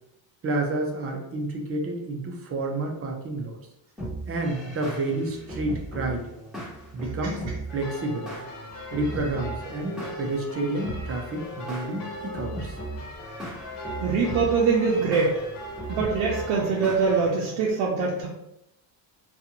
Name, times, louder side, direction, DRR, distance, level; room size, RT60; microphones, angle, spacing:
voice 1, 0.4-3.6 4.3-6.3 6.9-7.4 7.7-8.3 8.9-12.8, right 2 dB, 30° right, 1 dB, 0.5 m, -30 dB
sound 1, 4.0-17.7, right 2 dB, ahead, 1.1 m, -38 dB
sound 2, 7.7-17.3, left 1 dB, 50° left, 0.6 m, -39 dB
voice 2, 14.0-15.4 15.9-18.3, right 4 dB, 85° right, -3 dB, 0.6 m, -23 dB
2.5 x 2.4 x 2.7 m, 0.85 s
cardioid pair, 125°, 46 cm